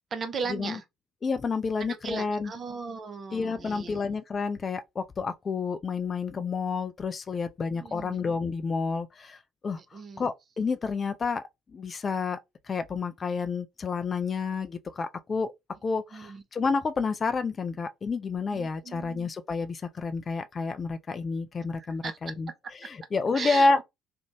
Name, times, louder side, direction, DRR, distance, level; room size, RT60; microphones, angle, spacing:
voice 1, 0.1-0.8 1.9-4.1 7.7-8.2 9.8-10.3 16.1-16.4 18.5-19.3 21.8-22.2 23.3-23.8, right 5 dB, 35° right, 0.6 m, -37 dB
voice 2, 1.2-2.5 3.3-9.4 9.6-9.8 10.2-11.4 11.7-12.4 12.7-15.5 15.8-22.5 22.8-23.8, left 4 dB, 30° left, 0.3 m, -29 dB
2.5 x 2.1 x 3.0 m
figure-of-eight pair, 55°, 0 cm